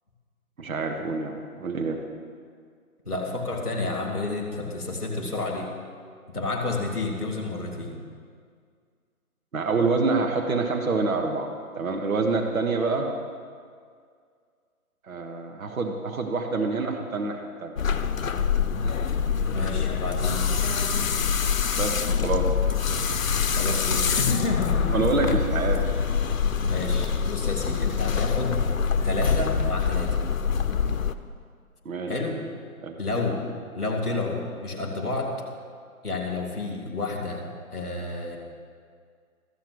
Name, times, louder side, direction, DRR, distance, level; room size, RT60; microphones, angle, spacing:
voice 1, 0.6-2.0 9.5-13.1 15.1-17.7 21.8-22.5 24.9-25.9 31.8-32.1 32.8-33.0, right 3 dB, 65° right, 3 dB, 1.4 m, -27 dB
voice 2, 3.0-5.7 6.3-8.0 19.5-20.5 23.5-24.9 25.3-25.4 26.6-28.6 29.0-30.2 32.0-32.4 33.0-33.4 33.7-35.4 36.0-38.4, left 3 dB, ahead, -16 dB, 0.8 m, -30 dB
sound 1, 17.8-31.1, left 6 dB, 65° left, 0.7 m, -25 dB
13.5 x 7.6 x 6.8 m, 2.1 s
figure-of-eight pair, 150°, 44 cm